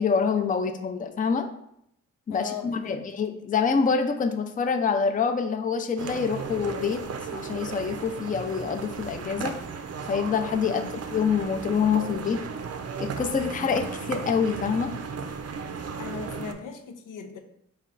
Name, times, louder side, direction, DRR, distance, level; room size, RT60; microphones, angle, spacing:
voice 1, 0.0-1.5 2.3-7.0 7.3-9.5 10.1-10.8 11.1-12.4 13.0-14.9, left 6 dB, 25° left, 6 dB, 0.4 m, -26 dB
voice 2, 2.3-3.0 10.6-11.0 15.9-17.4, left 6 dB, 85° left, 5 dB, 0.5 m, -38 dB
sound 1, 6.0-16.5, right 5 dB, 55° right, 0.5 m, -35 dB
4.2 x 2.3 x 3.7 m, 0.75 s
cardioid pair, 60°, 30 cm